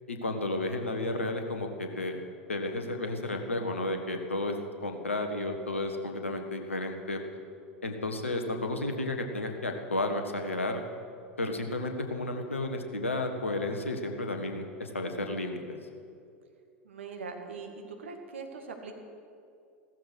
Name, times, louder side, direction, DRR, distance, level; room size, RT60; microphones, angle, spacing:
voice 1, 0.1-2.2 2.5-7.2 7.8-10.8 11.4-15.8, left 2 dB, 80° left, 5 dB, 1.5 m, -32 dB
voice 2, 16.8-17.7 18.0-18.9, right 4 dB, 70° right, 4 dB, 2.1 m, -41 dB
15.5 x 14.0 x 6.3 m, 2.4 s
figure-of-eight pair, 80°, 7 cm